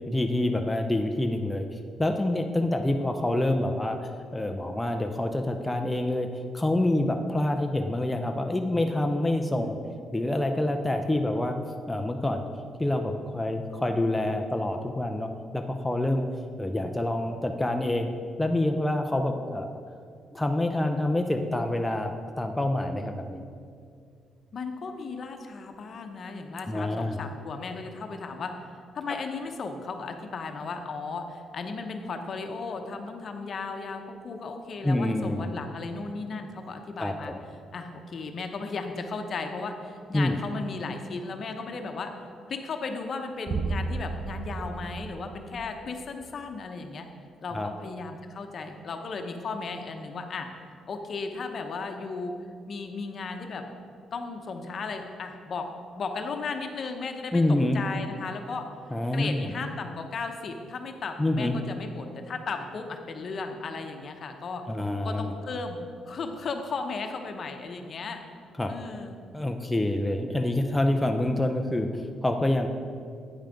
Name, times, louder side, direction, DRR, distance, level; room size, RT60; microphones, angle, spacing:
voice 1, 0.1-6.3 6.5-9.8 10.1-11.6 11.9-12.5 12.8-16.3 16.6-18.1 18.4-19.7 20.3-22.1 22.4-23.4 26.7-27.2 34.8-35.5 37.0-37.4 40.1-40.3 47.5-47.7 57.3-57.8 58.9-59.5 61.2-61.6 64.7-65.3 68.6-68.7 69.3-72.7, left 1 dB, 10° left, 4 dB, 0.5 m, -27 dB
voice 2, 24.5-28.5 28.9-37.3 37.7-42.1 42.5-47.1 47.4-50.5 50.9-52.3 52.7-53.6 54.1-55.7 56.0-57.4 57.7-58.7 59.1-64.6 65.0-68.2 68.7-69.2, left 4 dB, 50° left, 5 dB, 0.8 m, -35 dB
sound 1, 43.5-46.1, right 3 dB, 40° right, 0.5 m, -33 dB
8.9 x 5.6 x 5.1 m, 2.3 s
cardioid pair, 90°, 0 cm